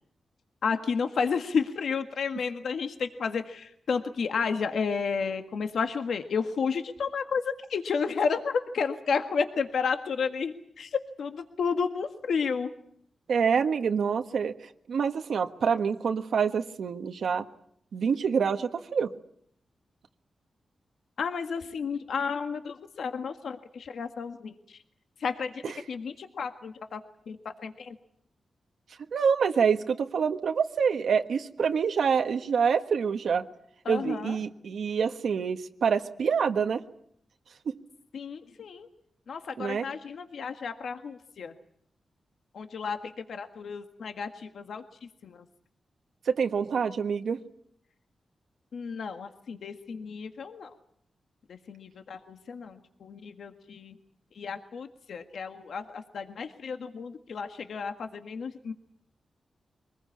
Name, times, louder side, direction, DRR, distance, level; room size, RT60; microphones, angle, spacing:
voice 1, 0.6-7.4 7.7-12.7 21.2-24.8 25.2-25.5 25.9-27.0 27.3-27.4 27.6-28.0 33.9-34.4 38.1-38.9 39.3-41.5 42.5-44.8 45.2-45.4 48.7-50.7 51.5-54.0 54.4-58.7, left 5 dB, 75° left, 6 dB, 1.7 m, -32 dB
voice 2, 13.3-14.5 14.9-17.4 17.9-19.1 25.6-25.8 29.1-33.5 33.9-36.8 39.6-39.8 46.3-47.4, right 6 dB, 75° right, 6 dB, 1.4 m, -26 dB
24.0 x 20.0 x 8.6 m, 0.69 s
wide cardioid pair, 140°, 0 cm